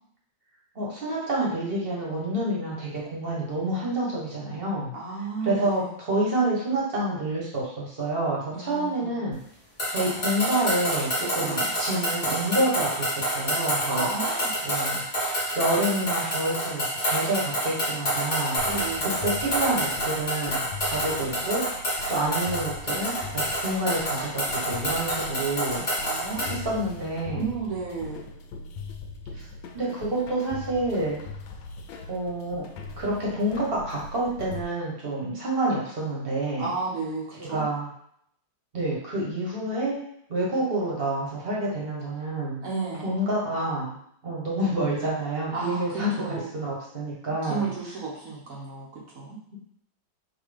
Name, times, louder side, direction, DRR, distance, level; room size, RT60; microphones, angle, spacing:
voice 1, 0.7-4.9 5.4-9.4 9.9-14.1 14.6-15.0 15.5-18.6 19.0-21.6 22.1-25.9 26.5-27.5 29.3-29.4 29.7-31.2 32.1-32.7 33.0-36.7 37.3-37.9 38.7-40.0 40.3-42.7 43.0-44.0 44.2-47.7, right 1 dB, 35° right, -4 dB, 1.2 m, -28 dB
voice 2, 4.9-5.9 8.5-9.2 11.3-11.7 13.9-14.6 18.6-19.2 26.0-26.4 27.4-28.3 36.6-37.6 42.6-43.2 45.5-46.5 47.4-49.4, right 4 dB, 55° right, -4 dB, 1.2 m, -33 dB
sound 1, 9.8-26.6, equal, 20° left, 1.1 m, -28 dB
sound 2, 18.6-34.6, left 3 dB, 80° left, 1.4 m, -40 dB
4.7 x 2.9 x 3.4 m, 0.69 s
omnidirectional pair, 2.2 m